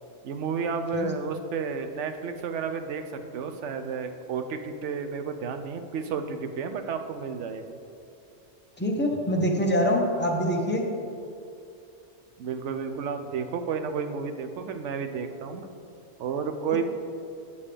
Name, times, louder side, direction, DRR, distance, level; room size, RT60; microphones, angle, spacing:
voice 1, 0.2-3.0 3.3-7.8 12.4-15.7 16.2-16.8, right 6 dB, 90° right, 7 dB, 0.9 m, -31 dB
voice 2, 8.8-10.8, equal, 10° left, 0 dB, 0.7 m, -24 dB
9.3 x 6.9 x 3.4 m, 2.6 s
omnidirectional pair, 1.2 m